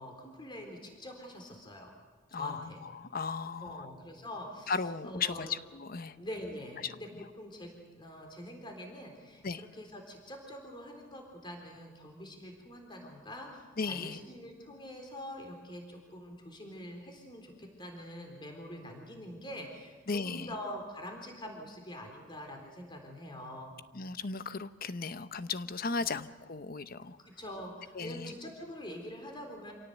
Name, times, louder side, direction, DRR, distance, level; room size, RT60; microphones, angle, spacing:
voice 1, 0.0-1.9 2.3-2.8 3.6-4.8 5.0-5.5 6.2-23.8 27.2-29.7, left 1 dB, 25° left, 2 dB, 3.9 m, -45 dB
voice 2, 2.3-3.9 4.7-6.2 6.8-7.0 9.4-9.6 13.8-14.2 20.1-20.5 23.9-27.2 27.9-28.3, left 4 dB, 50° left, 12 dB, 0.9 m, -36 dB
27.0 x 17.5 x 8.1 m, 1.3 s
head